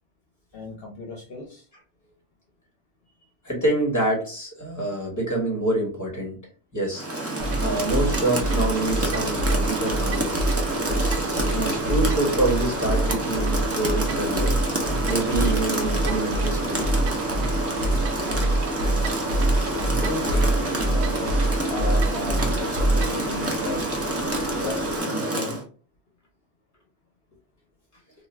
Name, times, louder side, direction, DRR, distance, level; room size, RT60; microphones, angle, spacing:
voice 1, 0.5-1.7 19.9-23.9 24.6-25.6, left 3 dB, 65° left, 0 dB, 0.8 m, -35 dB
voice 2, 3.4-6.4 6.7-7.1 7.6-10.3 11.0-14.6 15.1-16.9, right 2 dB, 15° left, -2 dB, 1.2 m, -26 dB
Rain, 6.9-25.6, right 1 dB, 25° right, 0.3 m, -28 dB
sound 1, 7.4-25.0, right 1 dB, 60° right, 1.0 m, -38 dB
sound 2, 7.4-23.3, right 1 dB, 85° right, 0.9 m, -26 dB
2.4 x 2.3 x 3.1 m, 0.38 s
omnidirectional pair, 1.1 m